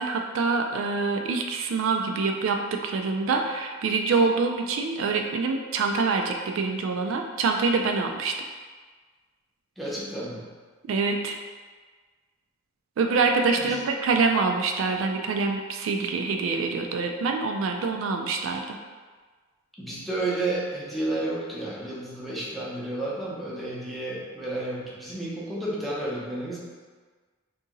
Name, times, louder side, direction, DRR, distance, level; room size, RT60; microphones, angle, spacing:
voice 1, 0.0-8.4 10.9-11.4 13.0-18.8, right 4 dB, 75° right, 4 dB, 0.3 m, -25 dB
voice 2, 9.8-10.5 13.6-13.8 19.8-26.6, right 2 dB, ahead, -7 dB, 0.7 m, -31 dB
2.8 x 2.6 x 3.7 m, 1.4 s
head